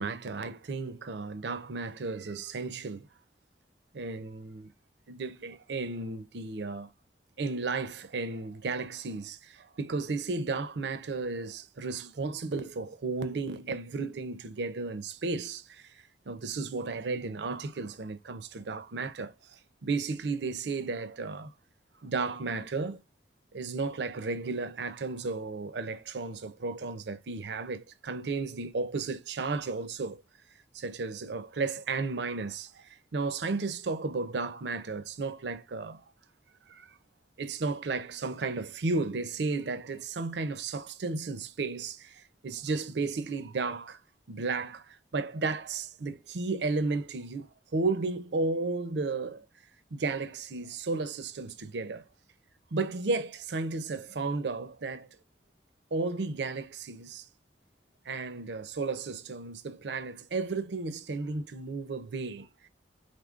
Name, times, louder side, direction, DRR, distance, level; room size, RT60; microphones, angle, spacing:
voice 1, 0.0-3.1 3.9-4.7 5.1-6.9 7.4-15.9 16.3-21.5 22.0-23.0 23.5-30.2 30.7-36.0 36.7-36.9 37.4-44.0 44.3-49.4 49.9-52.0 52.7-55.1 55.9-57.3 58.1-62.5, right 3 dB, 70° right, 0.6 m, -34 dB
5.2 x 3.8 x 2.4 m
head